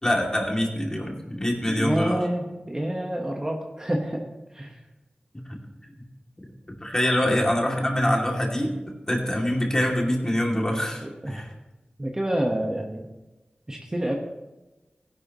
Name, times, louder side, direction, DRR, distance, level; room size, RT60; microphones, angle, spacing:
voice 1, 0.0-2.2 5.3-5.6 6.8-8.8 9.1-11.5, left 1 dB, 20° left, -1 dB, 2.7 m, -25 dB
voice 2, 1.6-4.3 4.5-4.8 7.2-7.5 11.0-11.4 12.0-13.1 13.7-14.2, right 1 dB, 20° right, 1 dB, 1.3 m, -28 dB
16.5 x 11.0 x 3.1 m, 1.1 s
wide cardioid pair, 65°, 3 cm